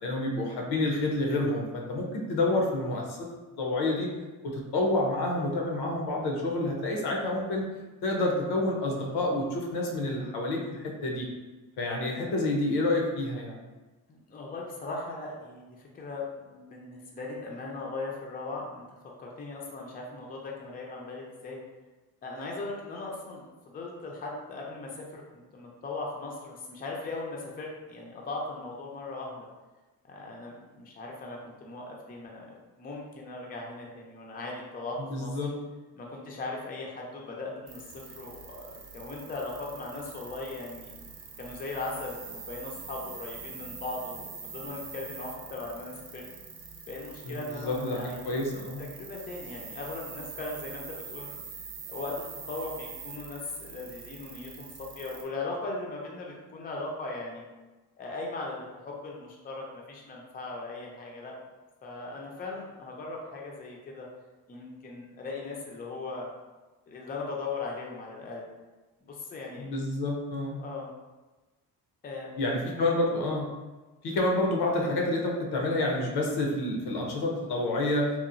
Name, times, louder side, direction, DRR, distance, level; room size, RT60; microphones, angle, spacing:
voice 1, 0.0-3.2 3.6-4.1 4.4-7.6 8.0-11.3 11.8-13.6 35.0-35.5 47.2-48.8 69.6-70.6 72.4-73.5 74.0-78.1, left 2 dB, 80° left, -1 dB, 0.7 m, -28 dB
voice 2, 14.1-18.8 19.2-21.6 22.2-29.5 30.1-32.5 32.8-35.3 35.9-40.9 41.4-46.2 46.9-48.4 48.8-51.4 51.9-54.7 55.0-57.4 58.0-61.4 61.8-64.1 64.5-66.3 66.9-68.4 69.0-69.7 70.6-70.9 72.0-72.4, left 3 dB, 25° left, -2 dB, 0.4 m, -38 dB
sound 1, 37.7-55.2, right 5 dB, 65° right, 0.6 m, -44 dB
2.9 x 2.0 x 2.4 m, 1.2 s
cardioid pair, 100°, 38 cm